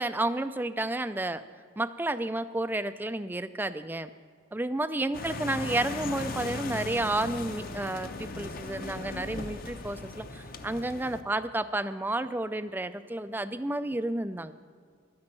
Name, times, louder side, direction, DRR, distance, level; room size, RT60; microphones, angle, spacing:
voice 1, 0.0-1.4 1.8-4.1 4.5-14.5, right 2 dB, 10° right, 11 dB, 0.3 m, -31 dB
sound 1, 5.1-11.2, left 3 dB, 45° left, 0.8 m, -38 dB
12.5 x 10.5 x 7.5 m, 2.1 s
head